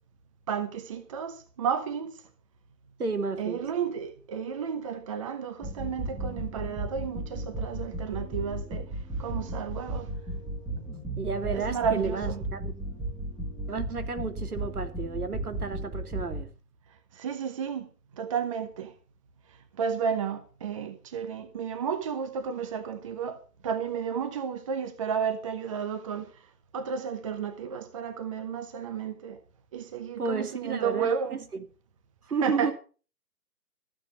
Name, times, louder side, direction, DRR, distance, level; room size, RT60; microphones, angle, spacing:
voice 1, 0.5-2.2 3.4-8.9 9.2-10.1 11.5-12.4 17.1-17.9 18.2-18.9 19.8-26.3 26.7-29.4 29.7-31.4 32.4-32.7, right 7 dB, 20° right, 0.9 m, -32 dB
voice 2, 3.0-3.6 11.2-12.7 13.7-16.5 30.2-31.6 32.3-32.7, right 4 dB, 65° right, 3.1 m, -32 dB
sound 1, 5.6-16.4, right 1 dB, 5° left, 1.7 m, -35 dB
14.5 x 8.3 x 6.9 m
figure-of-eight pair, 145°, 48 cm